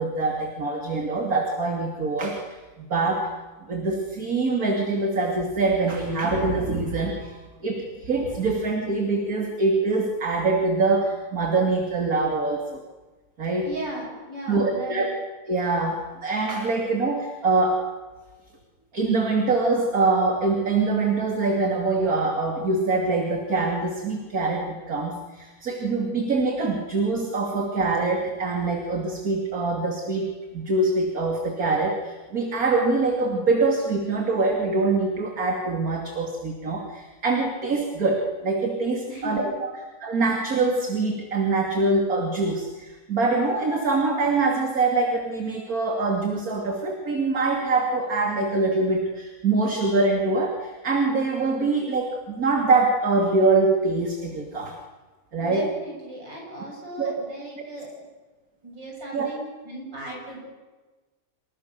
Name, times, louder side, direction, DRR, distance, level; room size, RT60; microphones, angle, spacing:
voice 1, 0.0-3.3 3.7-7.4 7.6-12.8 13.4-13.7 14.5-15.1 15.5-17.8 18.9-39.7 40.0-54.8 55.3-55.6 57.0-57.1 59.1-59.3, right 3 dB, 50° right, 2 dB, 3.2 m, -24 dB
voice 2, 13.6-15.1 39.1-39.5 55.4-57.9 58.6-60.4, right 1 dB, 90° right, -2 dB, 8.3 m, -36 dB
29.5 x 27.0 x 6.9 m, 1.3 s
omnidirectional pair, 1.9 m